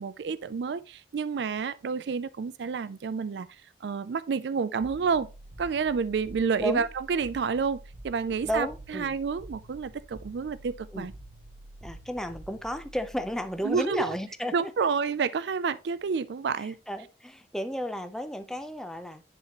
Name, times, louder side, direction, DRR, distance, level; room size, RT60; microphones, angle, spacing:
voice 1, 0.0-5.3 5.6-7.8 8.0-11.1 13.6-14.2 14.5-16.8, right 5 dB, 70° right, 0.4 m, -29 dB
sound 1, 4.8-13.9, right 1 dB, 45° right, 0.8 m, -48 dB
voice 2, 8.4-9.2 10.9-11.1 11.8-14.9 16.6-19.2, equal, 5° left, 0.6 m, -33 dB
10.5 x 4.1 x 3.0 m
head